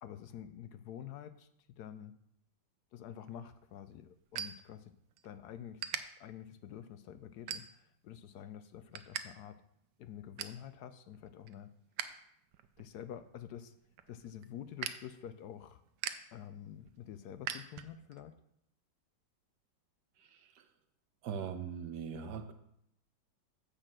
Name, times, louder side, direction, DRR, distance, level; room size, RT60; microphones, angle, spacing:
voice 1, 0.0-1.5 1.8-2.1 2.9-4.9 5.2-9.6 10.0-11.7 12.8-13.7 14.1-15.8 16.3-18.3, left 10 dB, 70° left, 11 dB, 1.0 m, -48 dB
sound 1, 3.2-5.3 5.6-6.0 6.6-6.8 7.3-8.0 8.4-9.2 9.5-9.6 10.0-10.6 11.1-12.1 12.4-18.2, right 10 dB, 90° right, 1.3 m, -43 dB
voice 2, 21.2-22.5, right 7 dB, 70° right, 7 dB, 1.4 m, -40 dB
9.8 x 4.4 x 7.4 m, 0.74 s
omnidirectional pair, 1.9 m